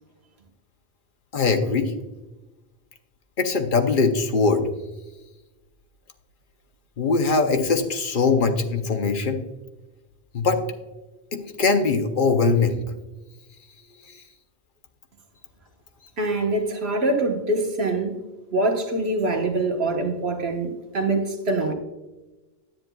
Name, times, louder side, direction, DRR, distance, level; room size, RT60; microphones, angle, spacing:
voice 1, 1.3-1.9 3.4-4.7 7.0-9.4 10.3-10.6 11.3-12.8, left 4 dB, 55° left, 6 dB, 0.8 m, -21 dB
voice 2, 16.2-18.2 18.5-21.7, right 2 dB, 80° right, 2 dB, 1.5 m, -24 dB
10.5 x 9.0 x 2.2 m, 1.1 s
omnidirectional pair, 1.1 m